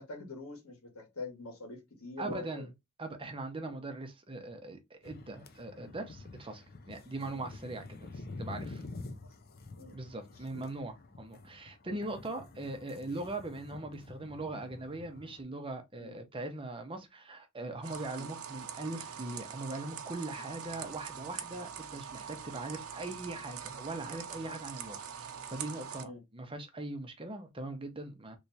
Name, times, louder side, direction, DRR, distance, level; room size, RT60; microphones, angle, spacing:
voice 1, 0.0-2.7 3.6-3.8 9.7-9.9 10.3-10.6 11.8-12.0 16.0-16.2 18.1-18.4 26.0-26.2, left 3 dB, 90° left, 1.6 m, -45 dB
voice 2, 2.2-2.7 3.0-8.8 9.9-28.4, right 2 dB, 25° right, 0.8 m, -41 dB
sound 1, 5.0-15.4, left 3 dB, 45° left, 0.6 m, -48 dB
sound 2, 17.8-26.0, right 8 dB, 80° right, 0.7 m, -43 dB
3.4 x 3.1 x 2.7 m
head